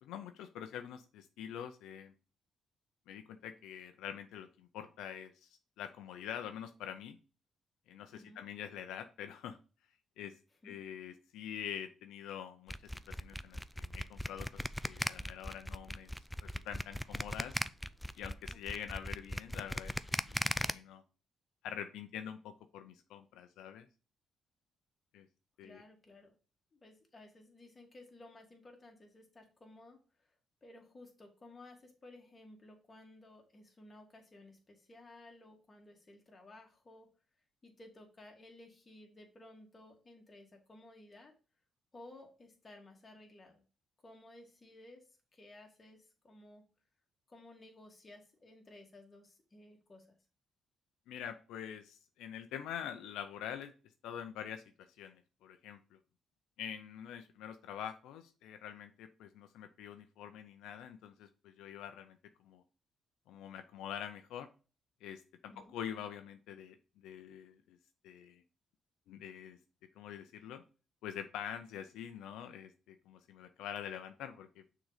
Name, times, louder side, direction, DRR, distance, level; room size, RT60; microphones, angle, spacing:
voice 1, 0.0-2.1 3.1-5.5 5.8-7.2 7.9-9.6 10.2-10.4 10.6-16.1 16.4-17.6 18.2-21.0 21.6-23.9 25.1-25.3 25.6-25.8 51.1-53.7 54.0-56.0 56.6-62.2 62.4-62.6 63.3-64.5 65.0-67.8 68.0-68.4 69.1-69.6 70.0-70.6 71.0-74.6, left 9 dB, 90° left, 7 dB, 0.6 m, -45 dB
voice 2, 8.1-8.4 10.6-10.8 25.6-26.3 26.7-30.0 30.6-37.1 37.6-41.3 41.9-43.6 44.0-45.0 45.3-46.6 47.3-50.1 65.5-65.7, left 2 dB, 30° left, 1 dB, 2.1 m, -56 dB
sound 1, 12.7-20.7, equal, 5° left, 0.4 m, -37 dB
6.2 x 3.9 x 4.9 m, 0.35 s
cardioid pair, 90°, 0 cm